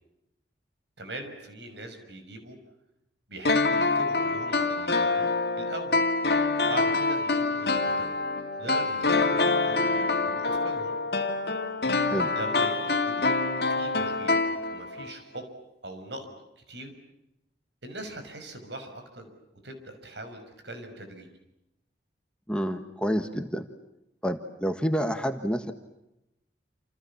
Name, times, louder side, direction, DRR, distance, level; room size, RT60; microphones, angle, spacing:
voice 1, 1.0-2.6 3.3-5.3 5.6-6.0 6.7-8.2 8.6-10.9 12.4-13.4 13.7-14.4 14.7-15.4 15.8-16.9 17.8-19.3 19.6-21.3, right 1 dB, 75° right, 7 dB, 6.2 m, -41 dB
sound 1, 3.4-15.1 15.4-15.5, left 3 dB, 60° left, 2.5 m, -26 dB
voice 2, 22.5-23.7 24.2-25.7, equal, 5° left, 7 dB, 1.6 m, -28 dB
29.0 x 28.5 x 7.2 m, 0.88 s
head